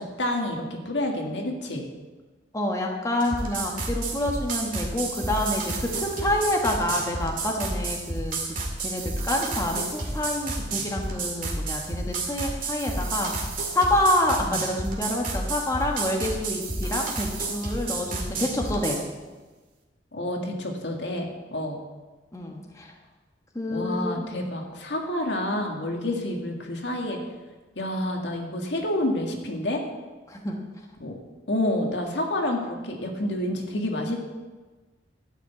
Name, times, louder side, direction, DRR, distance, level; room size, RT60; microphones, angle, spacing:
voice 1, 0.0-1.9 14.4-14.6 20.1-21.8 23.7-27.2 27.8-29.8 31.0-31.2 31.5-34.2, left 1 dB, 70° left, 2 dB, 1.9 m, -29 dB
voice 2, 2.5-8.4 8.8-13.3 13.7-19.0 22.3-22.9 23.5-24.3 30.3-30.6, left 1 dB, 20° left, 0 dB, 1.3 m, -27 dB
sound 1, 3.2-19.0, right 3 dB, 50° right, 2.2 m, -31 dB
12.5 x 6.0 x 8.3 m, 1.3 s
head